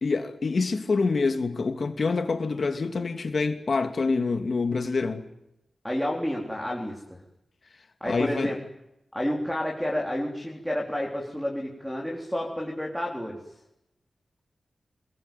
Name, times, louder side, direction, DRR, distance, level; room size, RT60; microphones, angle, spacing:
voice 1, 0.0-5.3 8.0-8.5, left 4 dB, 50° left, 2.7 m, -26 dB
voice 2, 5.8-7.0 8.0-8.6 9.1-13.4, left 1 dB, ahead, 3.9 m, -30 dB
27.0 x 21.5 x 9.3 m
wide cardioid pair, 165°, 0 cm